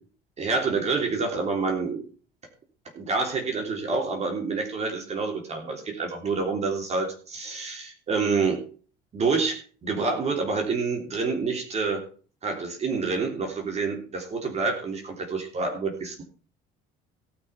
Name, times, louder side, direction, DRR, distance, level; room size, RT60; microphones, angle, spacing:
voice 1, 0.4-2.1 2.9-8.6 9.1-12.0 12.4-16.2, right 4 dB, 35° right, 2 dB, 3.3 m, -27 dB
17.0 x 6.0 x 5.8 m, 0.40 s
cardioid pair, 115°, 19 cm